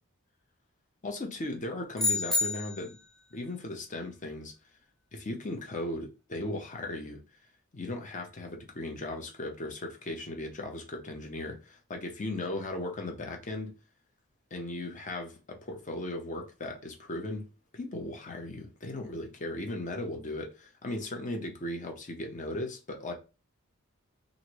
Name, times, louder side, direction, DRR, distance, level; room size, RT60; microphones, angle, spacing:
voice 1, 1.0-3.0 3.3-4.5 5.1-7.2 7.7-13.7 14.5-17.4 17.7-23.1, left 1 dB, 35° left, 0.7 m, -37 dB
sound 1, 2.0-3.1, left 3 dB, ahead, 0.4 m, -29 dB
3.1 x 2.6 x 3.0 m
head